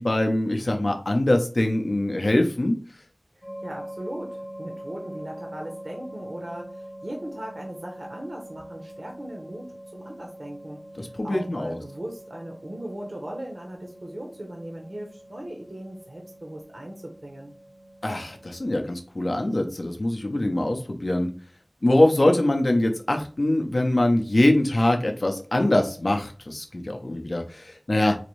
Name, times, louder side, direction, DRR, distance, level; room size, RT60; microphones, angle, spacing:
voice 1, 0.0-2.7 11.0-11.8 18.0-21.3 21.8-28.2, left 1 dB, 65° left, 3 dB, 0.5 m, -23 dB
voice 2, 3.3-17.5, right 1 dB, 60° right, 1 dB, 0.6 m, -38 dB
sound 1, 3.4-18.7, right 1 dB, 35° left, 0.8 m, -43 dB
4.0 x 2.6 x 3.0 m, 0.39 s
wide cardioid pair, 50°, 0 cm